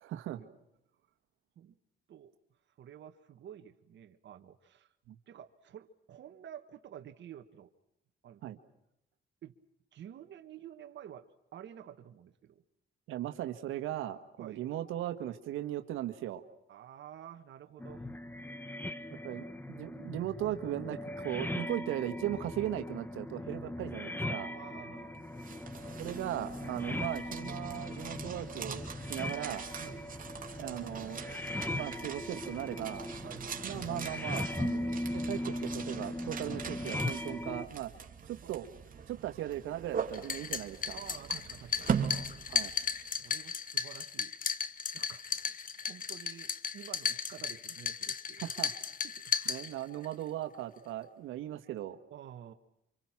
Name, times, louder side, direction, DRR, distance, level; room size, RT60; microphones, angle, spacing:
voice 1, 0.0-0.4 5.1-5.2 8.4-8.6 13.1-16.4 19.2-24.5 26.0-28.8 29.1-29.7 30.6-31.4 31.7-33.1 33.6-37.9 38.3-38.7 39.1-41.0 42.5-42.7 48.4-48.7 49.5-52.0, right 12 dB, 90° right, 8 dB, 1.7 m, -38 dB
voice 2, 2.8-4.9 5.3-7.7 8.2-8.4 9.4-9.6 9.9-12.6 14.4-14.7 16.7-18.1 24.5-25.3 26.7-26.9 29.8-30.1 33.2-33.8 38.4-38.6 40.9-42.4 43.2-44.4 44.9-48.4 49.0-49.3 51.5-51.6 52.1-52.5, right 10 dB, 65° right, 6 dB, 1.5 m, -50 dB
sound 1, 17.8-37.7, left 1 dB, 10° left, 1.4 m, -39 dB
sound 2, 25.1-43.2, right 7 dB, 45° right, 3.1 m, -42 dB
sound 3, 40.1-50.1, left 6 dB, 45° left, 1.3 m, -35 dB
29.0 x 26.0 x 6.0 m, 0.83 s
cardioid pair, 90°, 20 cm